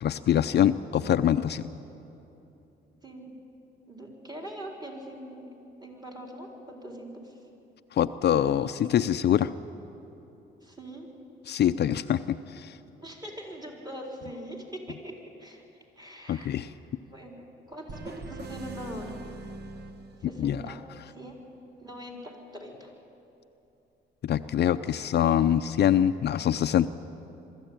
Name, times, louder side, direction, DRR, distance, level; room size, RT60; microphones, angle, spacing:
voice 1, 0.0-1.7 7.9-9.5 11.5-12.8 16.3-16.7 20.4-20.7 24.2-26.9, left 10 dB, 55° left, 11 dB, 0.5 m, -24 dB
voice 2, 3.9-5.4 5.8-7.4 10.6-11.1 13.0-15.1 15.4-15.6 16.0-16.5 17.1-19.2 20.2-20.8 21.1-21.4 21.8-22.9, right 1 dB, 20° right, 0 dB, 4.3 m, -42 dB
sound 1, 17.9-20.7, right 2 dB, 55° right, 1.6 m, -42 dB
23.0 x 13.5 x 9.0 m, 2.9 s
cardioid pair, 90°, 20 cm